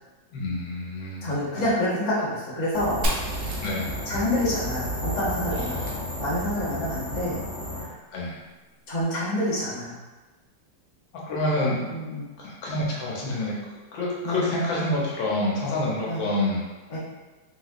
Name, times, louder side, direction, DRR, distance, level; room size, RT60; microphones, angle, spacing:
voice 1, 0.3-1.7 3.6-3.9 5.5-5.9 8.1-8.4 11.3-11.8 12.4-13.5 13.9-16.6, left 1 dB, 80° left, -4 dB, 1.5 m, -28 dB
voice 2, 1.2-3.0 3.5-3.6 4.1-5.9 6.2-7.4 7.8-8.0 8.9-10.0 11.9-12.2 14.2-14.4 16.1-16.2 16.9-17.0, left 1 dB, 35° left, -8 dB, 0.8 m, -27 dB
sound 1, 2.7-7.9, equal, 60° left, 1.1 m, -32 dB
Fire, 3.0-6.7, equal, 80° right, 0.6 m, -34 dB
3.5 x 2.9 x 2.4 m, 1.2 s
omnidirectional pair, 2.1 m